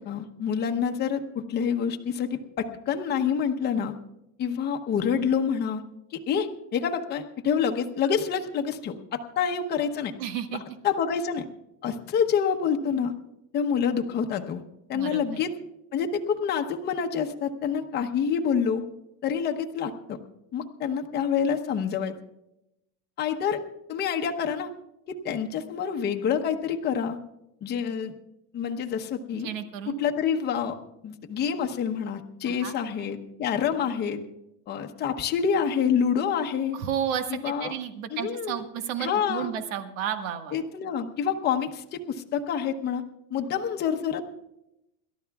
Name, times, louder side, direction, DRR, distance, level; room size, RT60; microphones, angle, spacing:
voice 1, 0.0-3.9 4.4-5.8 6.3-10.1 10.8-11.4 11.8-13.1 13.5-14.6 14.9-15.5 15.9-18.8 19.2-20.2 20.5-22.1 23.2-23.6 23.9-24.7 25.1-27.2 27.6-28.1 28.5-29.5 29.9-30.8 31.0-34.2 34.7-36.8 37.3-37.7 38.1-38.6 39.0-39.5 40.5-43.0 43.3-44.2, left 7 dB, 25° left, 5 dB, 0.9 m, -27 dB
voice 2, 10.2-10.6 14.9-15.4 29.4-30.0 32.5-32.7 36.7-40.6, right 9 dB, 80° right, 7 dB, 1.7 m, -32 dB
28.5 x 13.0 x 2.3 m, 0.86 s
cardioid pair, 160°, 39 cm